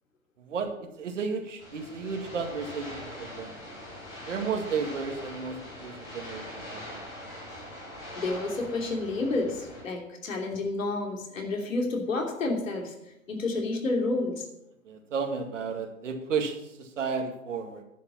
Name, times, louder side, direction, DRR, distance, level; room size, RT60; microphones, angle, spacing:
voice 1, 0.5-3.6 4.3-7.0 14.9-17.8, right 5 dB, 60° right, 4 dB, 2.2 m, -33 dB
sound 1, 1.6-9.8, left 1 dB, 5° left, 0.3 m, -42 dB
voice 2, 8.2-12.9 13.3-14.4, left 2 dB, 70° left, 1 dB, 3.2 m, -30 dB
10.5 x 6.8 x 7.4 m, 0.87 s
figure-of-eight pair, 125°, 41 cm